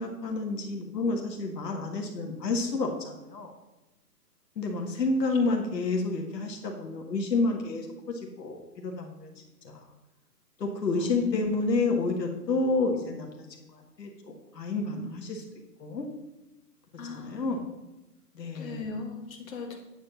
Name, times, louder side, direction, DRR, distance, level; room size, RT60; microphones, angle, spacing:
voice 1, 0.0-3.5 4.5-9.3 9.6-9.8 10.6-15.4 15.8-16.1 17.1-17.7 18.3-18.8, left 3 dB, 80° left, 2 dB, 1.7 m, -30 dB
voice 2, 10.9-11.4 16.9-17.5 18.5-19.8, left 4 dB, 55° left, 0 dB, 1.8 m, -39 dB
8.9 x 3.5 x 6.8 m, 1.0 s
hypercardioid pair, 165°, 49 cm